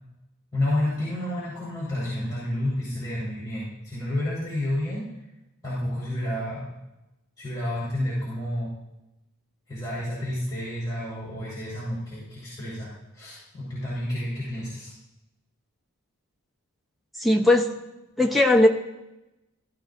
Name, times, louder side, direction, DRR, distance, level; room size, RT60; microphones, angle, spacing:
voice 1, 0.5-5.1 5.6-6.7 7.4-8.7 9.7-14.9, left 1 dB, 15° left, -11 dB, 4.0 m, -30 dB
voice 2, 17.2-17.7 18.2-18.7, left 1 dB, ahead, 0 dB, 0.7 m, -18 dB
15.0 x 12.5 x 2.7 m, 0.95 s
head